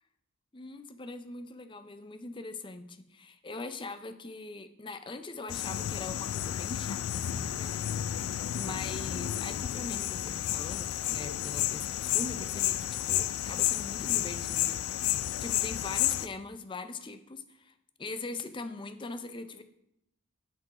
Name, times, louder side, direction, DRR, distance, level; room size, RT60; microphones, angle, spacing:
voice 1, 0.5-15.1 15.4-17.7 18.0-19.6, left 3 dB, 20° left, 10 dB, 0.5 m, -41 dB
sound 1, 5.5-16.3, left 12 dB, 85° left, 0.3 m, -31 dB
7.6 x 6.0 x 4.8 m, 0.81 s
head